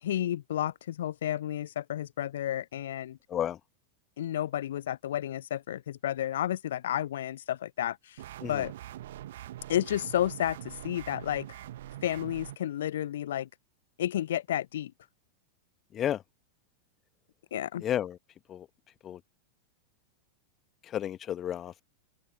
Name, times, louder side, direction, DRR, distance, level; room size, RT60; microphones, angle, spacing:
voice 1, 0.0-3.2 4.2-8.2 8.5-8.7 9.7-11.5 12.0-13.5 14.0-14.9 17.5-17.8, left 11 dB, 60° left, 0.9 m, -31 dB
voice 2, 3.3-3.6 8.4-8.6 15.9-16.2 17.8-18.2 18.5-18.7 19.0-19.2 20.8-21.8, left 10 dB, 30° left, 1.4 m, -32 dB
sound 1, 8.2-12.6, right 13 dB, 55° right, 1.1 m, -43 dB
open air
figure-of-eight pair, 90°, 0 cm